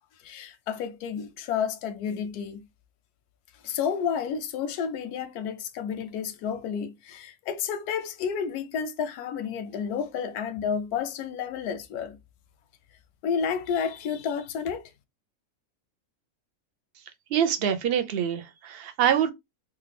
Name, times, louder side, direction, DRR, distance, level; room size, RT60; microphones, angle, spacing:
voice 1, 0.2-2.6 3.6-12.2 13.2-14.9, left 7 dB, 90° left, 1.1 m, -31 dB
voice 2, 17.3-19.3, right 9 dB, 65° right, 0.6 m, -25 dB
3.3 x 2.4 x 3.2 m
omnidirectional pair, 1.6 m